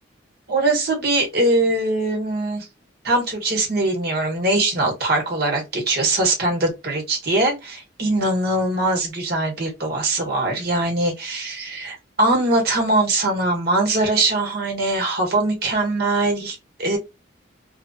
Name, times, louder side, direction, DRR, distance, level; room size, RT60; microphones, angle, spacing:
voice 1, 0.5-2.7 3.0-17.0, right 2 dB, 50° right, 1.3 m, -22 dB
3.0 x 2.3 x 2.7 m
head